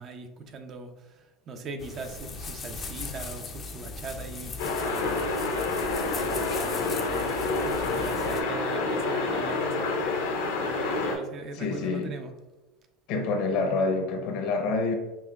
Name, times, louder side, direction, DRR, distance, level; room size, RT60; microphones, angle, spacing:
voice 1, 0.0-5.3 6.1-12.3, right 4 dB, 40° right, 7 dB, 0.5 m, -40 dB
sound 1, 1.8-8.4, left 3 dB, 30° left, 0.4 m, -38 dB
sound 2, 4.6-11.2, left 3 dB, 90° left, 0.8 m, -28 dB
voice 2, 11.5-12.1 13.1-14.9, left 3 dB, 60° left, 4 dB, 0.7 m, -27 dB
5.5 x 2.1 x 2.3 m, 1.0 s
supercardioid pair, 115°, 0 cm